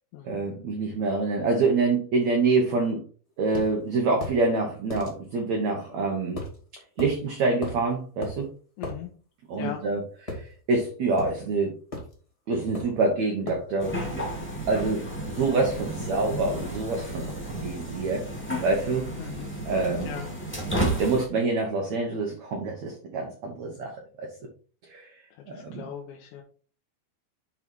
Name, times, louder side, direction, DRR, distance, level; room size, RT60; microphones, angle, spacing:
voice 1, 0.2-3.0 3.4-6.4 7.0-8.5 9.5-11.8 12.5-14.4 14.7-17.2 17.5-18.2 18.6-19.1 19.6-20.1 21.0-24.3 24.9-25.1 25.7-25.8, right 3 dB, 75° right, 2 dB, 1.6 m, -26 dB
sound 1, 3.5-3.7 4.2-4.4 4.9-5.1 6.4-6.6 7.0-7.1 7.6-7.8 8.2-8.4 8.8-9.0 10.3-10.8 11.2-11.4 11.9-12.1 12.7-13.0 13.5-13.7, left 1 dB, 25° left, 0.7 m, -35 dB
voice 2, 8.8-9.1 9.5-9.9 19.2-19.5 20.0-20.3 25.5-26.4, left 10 dB, 85° left, 0 dB, 3.1 m, -38 dB
sound 2, 13.8-21.2, right 1 dB, 5° left, 1.2 m, -32 dB
8.8 x 4.0 x 4.5 m, 0.40 s
omnidirectional pair, 5.0 m